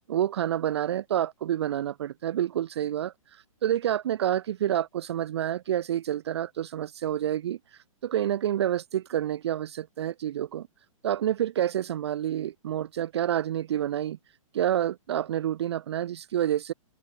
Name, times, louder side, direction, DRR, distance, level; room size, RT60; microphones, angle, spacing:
voice 1, 0.1-7.6 8.0-10.7 11.0-14.2 14.5-16.7, right 11 dB, 50° right, 0.5 m, -28 dB
open air
hypercardioid pair, 165°, 18 cm